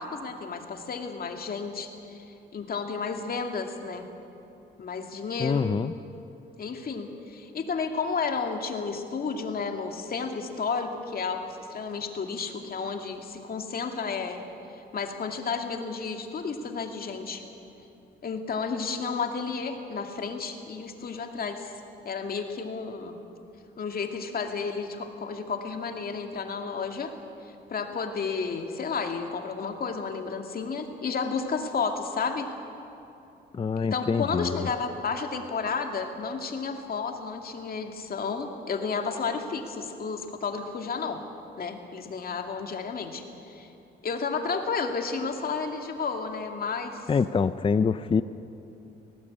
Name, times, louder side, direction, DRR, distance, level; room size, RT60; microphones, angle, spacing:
voice 1, 0.0-2.2 2.5-4.1 4.8-5.7 6.6-14.4 14.9-17.4 18.2-21.7 22.0-23.2 23.8-27.1 27.4-32.5 33.8-41.2 41.6-43.7 44.0-47.1, left 5 dB, 50° left, 4 dB, 2.4 m, -32 dB
voice 2, 5.4-5.9 33.5-34.7 47.1-48.2, left 5 dB, 25° left, 13 dB, 0.6 m, -25 dB
19.5 x 17.5 x 8.7 m, 2.8 s
cardioid pair, 90°, 20 cm